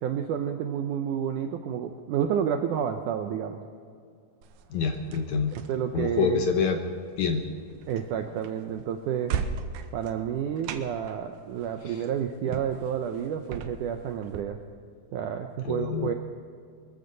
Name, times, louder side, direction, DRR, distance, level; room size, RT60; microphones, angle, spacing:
voice 1, 0.0-3.6 5.7-6.4 7.9-9.3 9.9-14.6 15.1-16.1, right 8 dB, 90° right, 6 dB, 1.8 m, -30 dB
sound 1, 4.4-14.4, right 7 dB, 75° right, 2.3 m, -39 dB
voice 2, 4.7-5.6 5.9-6.8 7.2-7.5 11.9-12.0 15.7-16.1, left 6 dB, 70° left, 4 dB, 1.9 m, -26 dB
24.0 x 14.0 x 4.0 m, 2.3 s
omnidirectional pair, 4.5 m